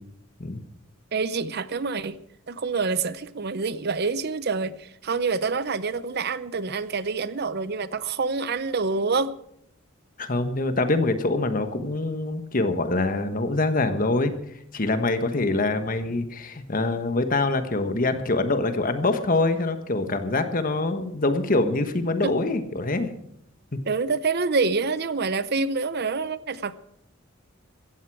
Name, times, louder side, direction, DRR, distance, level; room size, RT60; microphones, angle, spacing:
voice 1, 1.1-2.2 2.5-9.3 22.2-22.3 23.9-26.8, right 4 dB, 50° right, 0.7 m, -27 dB
voice 2, 10.2-14.4 14.7-23.1, left 2 dB, 40° left, 1.3 m, -24 dB
15.5 x 15.0 x 4.8 m
head